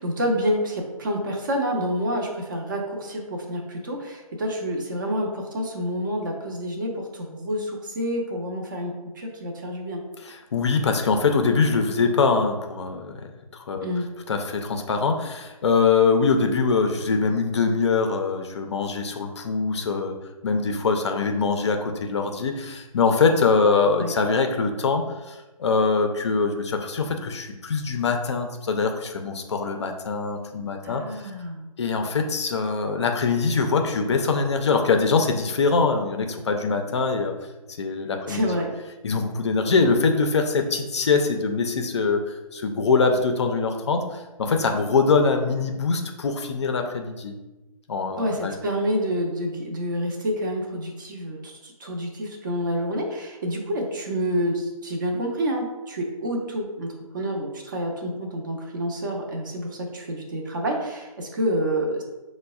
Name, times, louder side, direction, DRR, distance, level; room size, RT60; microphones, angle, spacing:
voice 1, 0.0-10.0 13.8-14.1 24.0-24.1 30.8-31.7 38.3-38.7 48.2-62.0, equal, 35° right, 1 dB, 0.5 m, -28 dB
voice 2, 10.3-13.3 13.6-13.9 14.3-20.2 20.4-31.0 31.8-37.3 37.8-38.5 39.0-47.4 47.9-48.5, left 4 dB, 50° left, 4 dB, 0.4 m, -23 dB
5.0 x 2.1 x 2.2 m, 1.1 s
figure-of-eight pair, 150°, 19 cm